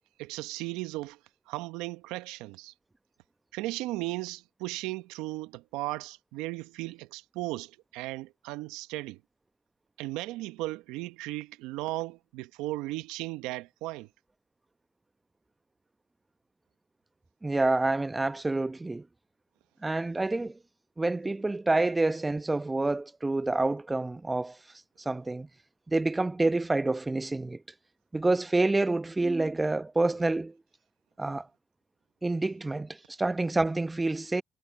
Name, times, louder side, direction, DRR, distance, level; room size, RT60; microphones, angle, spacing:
voice 1, 0.2-1.2 1.5-2.7 3.5-9.2 10.0-14.1, right 19 dB, 80° right, 1.1 m, -36 dB
voice 2, 17.4-19.1 19.8-20.6 21.0-24.6 25.0-25.5 25.9-27.6 28.1-30.6 31.2-31.5 32.2-34.4, right 2 dB, 25° right, 1.0 m, -28 dB
hypercardioid pair, 45°, 0 cm